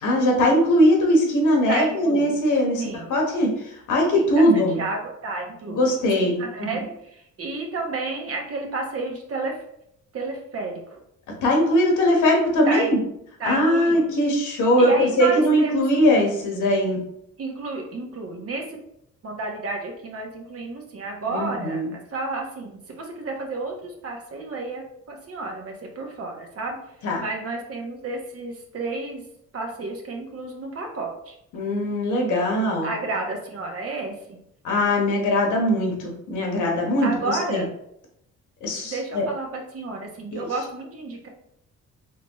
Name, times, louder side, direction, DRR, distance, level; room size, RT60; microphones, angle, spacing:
voice 1, 0.0-2.8 3.1-3.5 3.9-4.8 5.7-6.7 11.4-13.0 13.4-17.0 21.3-21.9 27.0-27.2 31.5-32.9 34.6-37.6 38.6-39.3 40.3-40.5, equal, 80° left, 0 dB, 1.2 m, -20 dB
voice 2, 1.7-2.4 2.8-3.2 4.1-9.6 10.1-11.0 12.7-13.0 13.4-14.1 14.8-15.9 17.4-18.8 19.2-26.8 27.2-29.2 29.5-31.3 32.8-34.4 37.0-37.6 38.8-41.3, right 3 dB, 50° right, 1 dB, 1.1 m, -31 dB
4.0 x 3.2 x 3.0 m, 0.75 s
cardioid pair, 90°, 30 cm